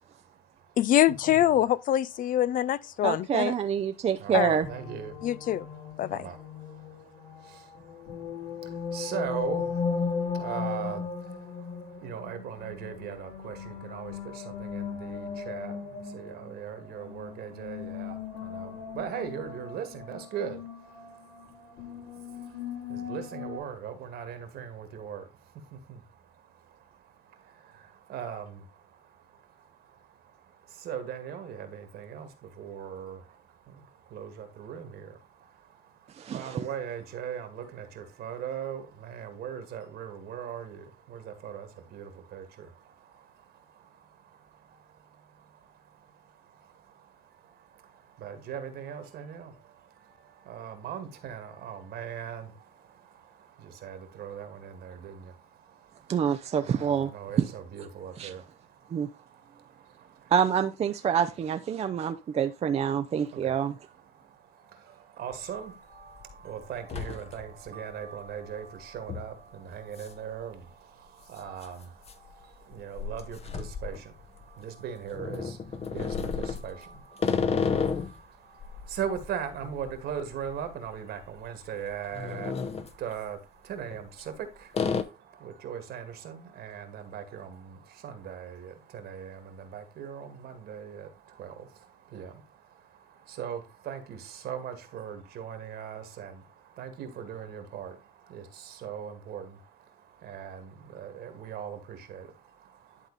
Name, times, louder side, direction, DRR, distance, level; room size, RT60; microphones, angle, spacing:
voice 1, 0.1-0.8 1.3-1.5 3.9-60.3 61.7-103.1, right 8 dB, 70° right, 2.1 m, -41 dB
voice 2, 0.8-3.5 4.3-4.6 5.2-5.7 6.0-6.2, left 12 dB, 55° left, 0.4 m, -24 dB
voice 3, 3.0-4.7 36.2-36.6 56.1-57.1 57.4-57.5 58.2-58.3 58.9-59.1 60.3-63.7, right 8 dB, 40° right, 0.6 m, -26 dB
sound 1, 4.6-23.6, left 5 dB, 90° left, 3.9 m, -37 dB
sound 2, 65.3-65.4 65.9-66.3 66.6-67.7 68.0-68.1 69.1-69.3 70.0-70.1 70.4-70.5 71.5-74.6 75.1-78.2 78.6-81.0 81.2-81.4 81.9-82.9 83.8-84.4 84.7-85.0, left 5 dB, 35° left, 0.9 m, -32 dB
11.0 x 4.0 x 4.1 m
cardioid pair, 110°, 17 cm